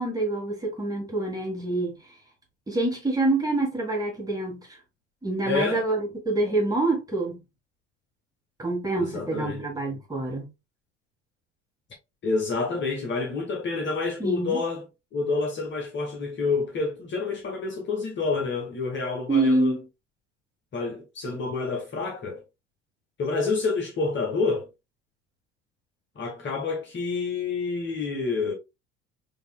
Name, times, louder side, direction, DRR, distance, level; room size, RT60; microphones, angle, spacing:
voice 1, 0.0-2.0 2.7-4.7 5.2-7.4 8.6-10.5 14.2-14.6 19.3-19.8, right 2 dB, 10° right, 1.8 m, -26 dB
voice 2, 5.4-5.8 8.9-9.6 12.2-14.9 15.1-19.8 20.7-22.4 23.2-24.7 26.1-28.5, left 4 dB, 30° left, 1.3 m, -28 dB
5.2 x 2.9 x 2.2 m
figure-of-eight pair, 65°, 36 cm